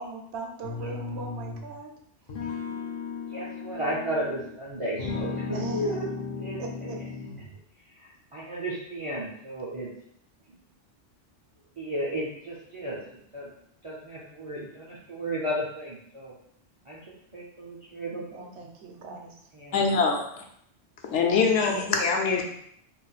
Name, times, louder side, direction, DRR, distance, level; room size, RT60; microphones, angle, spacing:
voice 1, 0.0-1.9 5.5-6.1 6.6-7.0 18.3-19.3, right 3 dB, 70° right, 1 dB, 0.8 m, -38 dB
sound 1, 0.6-1.7 2.3-4.6 5.0-7.6, left 5 dB, 55° left, 0.5 m, -35 dB
voice 2, 3.3-6.1 6.4-7.1 7.8-9.9 10.5-10.6 11.8-13.5 13.8-16.3 16.8-18.7 19.5-19.9 21.3-21.6, right 1 dB, 50° right, -6 dB, 0.4 m, -34 dB
voice 3, 19.7-20.4 21.1-22.4, left 5 dB, 75° left, 2 dB, 0.9 m, -23 dB
2.4 x 2.1 x 3.9 m, 0.69 s
omnidirectional pair, 1.2 m